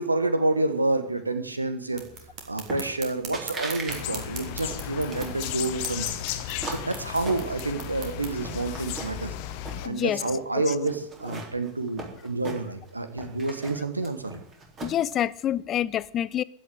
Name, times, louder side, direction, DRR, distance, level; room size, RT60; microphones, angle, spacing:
voice 1, 0.0-2.0 2.5-6.1 6.6-9.3 9.8-14.4, right 2 dB, 80° right, 9 dB, 1.6 m, -28 dB
sound 1, 1.9-8.3, right 5 dB, 40° right, 3.4 m, -42 dB
sound 2, 2.7-3.1 3.3-4.0 4.3-5.4 6.0-7.9 8.2-9.3 9.6-10.4 10.9-12.9 13.2-15.1, right 3 dB, 25° right, 3.7 m, -39 dB
sound 3, 3.9-9.9, left 11 dB, 45° left, 1.2 m, -35 dB
voice 2, 9.8-10.2 14.8-16.4, left 11 dB, 30° left, 19 dB, 0.5 m, -27 dB
15.5 x 6.3 x 9.9 m, 0.74 s
figure-of-eight pair, 90°, 0 cm